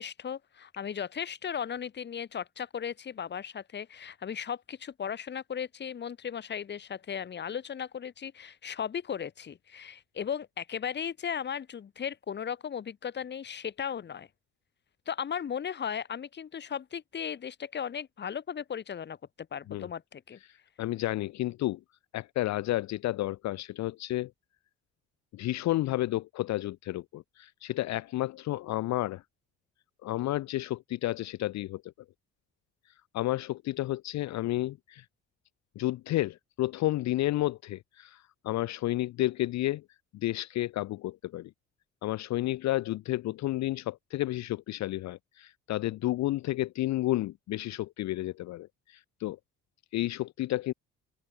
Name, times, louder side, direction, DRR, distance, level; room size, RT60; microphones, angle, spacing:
voice 1, 0.0-14.3 15.1-19.2 19.5-20.4, left 8 dB, 35° left, 0.9 m, -36 dB
voice 2, 20.5-21.8 22.1-24.3 25.3-29.2 30.0-31.9 33.1-35.1 35.8-39.8 40.1-41.5 42.0-49.4 49.9-50.7, left 16 dB, 65° left, 0.5 m, -31 dB
open air
cardioid pair, 90°, 30 cm